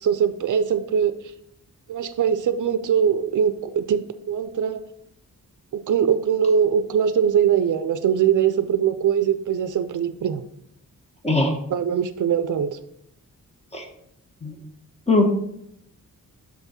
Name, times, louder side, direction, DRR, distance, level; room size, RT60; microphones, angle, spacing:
voice 1, 0.0-1.1 1.9-4.0 4.3-4.8 5.7-10.4 11.7-12.8, right 8 dB, 65° right, 11 dB, 0.5 m, -21 dB
voice 2, 11.2-11.5 13.7-13.8 14.4-14.5 15.1-15.3, left 2 dB, 20° left, 3 dB, 0.9 m, -19 dB
6.0 x 5.9 x 4.2 m, 0.75 s
wide cardioid pair, 175°, 34 cm